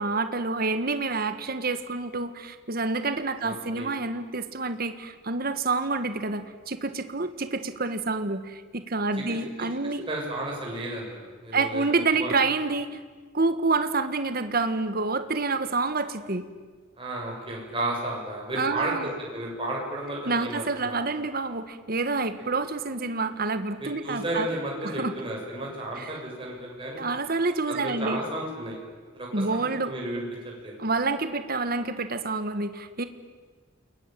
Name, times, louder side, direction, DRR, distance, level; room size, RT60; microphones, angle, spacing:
voice 1, 0.0-10.1 11.5-13.0 13.3-16.4 18.6-19.1 20.3-24.5 24.8-25.1 26.0-26.1 27.0-28.2 29.3-29.9 30.8-33.0, right 3 dB, 50° right, 10 dB, 1.5 m, -28 dB
voice 2, 3.4-3.9 10.1-11.9 12.1-12.3 17.0-21.0 23.8-27.1 27.7-28.8 29.1-30.2 30.6-30.8, right 1 dB, 25° right, -3 dB, 6.9 m, -33 dB
29.0 x 21.5 x 9.1 m, 1.5 s
head